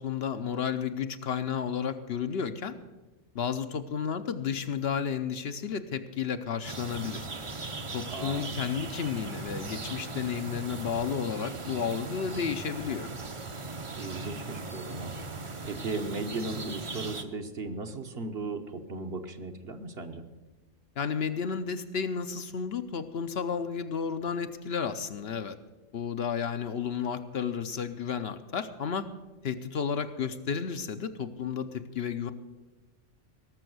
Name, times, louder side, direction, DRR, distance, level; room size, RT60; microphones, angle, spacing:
voice 1, 0.0-2.8 3.3-7.3 7.9-13.1 21.0-25.6 25.9-29.1 29.4-32.3, left 7 dB, 60° left, 9 dB, 0.9 m, -32 dB
sound 1, 6.6-17.2, right 3 dB, 30° right, 0.7 m, -38 dB
voice 2, 8.1-8.6 14.0-15.1 15.6-20.2, right 3 dB, 55° right, 6 dB, 1.2 m, -36 dB
18.0 x 7.0 x 7.8 m, 1.2 s
omnidirectional pair, 1.3 m